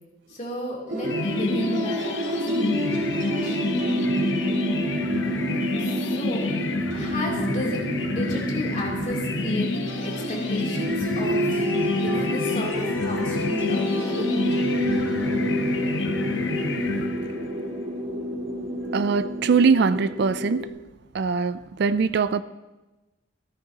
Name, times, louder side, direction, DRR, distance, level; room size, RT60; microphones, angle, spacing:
voice 1, 0.3-3.0 3.3-3.8 5.7-6.4 6.9-7.8 8.1-11.6 11.9-14.6, equal, 40° left, -4 dB, 3.1 m, -33 dB
sound 1, 0.9-20.7, equal, 80° right, 3.2 m, -28 dB
sound 2, 1.0-17.6, left 3 dB, 65° left, 0.9 m, -29 dB
voice 2, 18.9-20.7 21.1-22.4, right 5 dB, 60° right, 13 dB, 0.4 m, -22 dB
15.0 x 13.5 x 2.9 m, 1.1 s
head